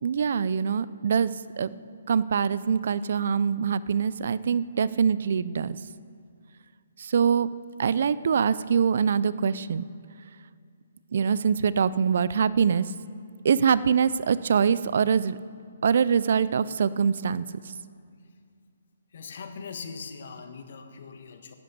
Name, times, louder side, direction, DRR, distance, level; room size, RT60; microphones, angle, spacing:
voice 1, 0.0-1.7 2.1-5.8 7.0-7.5 7.8-9.9 11.1-12.9 13.4-15.4 15.8-17.4, right 6 dB, 60° right, 18 dB, 0.5 m, -24 dB
voice 2, 19.1-21.5, left 5 dB, 60° left, 7 dB, 1.5 m, -41 dB
12.0 x 8.3 x 8.5 m, 2.2 s
hypercardioid pair, 150°, 0 cm